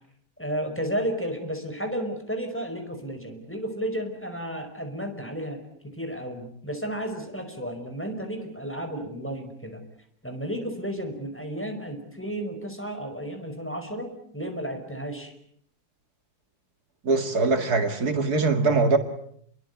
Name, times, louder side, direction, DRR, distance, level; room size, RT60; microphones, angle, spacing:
voice 1, 0.4-9.8 10.2-15.3, equal, 5° left, 4 dB, 5.2 m, -33 dB
voice 2, 17.0-19.0, right 3 dB, 65° right, 6 dB, 2.6 m, -22 dB
29.0 x 22.5 x 8.4 m, 0.68 s
omnidirectional pair, 1.8 m